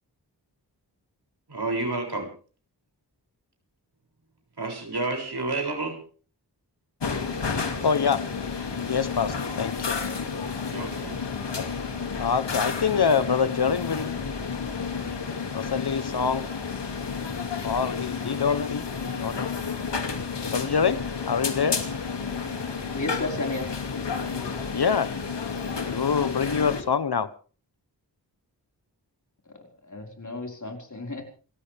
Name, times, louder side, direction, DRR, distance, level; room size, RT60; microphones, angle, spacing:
voice 1, 1.5-2.3 4.6-6.0 10.6-11.1, right 2 dB, 70° right, 7.1 m, -30 dB
sound 1, 7.0-26.8, left 5 dB, 90° left, 2.6 m, -31 dB
voice 2, 7.8-8.2 8.8-10.0 11.6-11.7 12.2-14.1 15.5-16.5 17.6-18.8 19.2-19.5 20.5-21.8 24.7-25.1 25.9-27.3, left 6 dB, 65° left, 1.1 m, -25 dB
voice 3, 22.9-23.8 29.9-31.2, left 2 dB, 45° left, 5.2 m, -32 dB
29.0 x 13.5 x 3.5 m
wide cardioid pair, 65°, 41 cm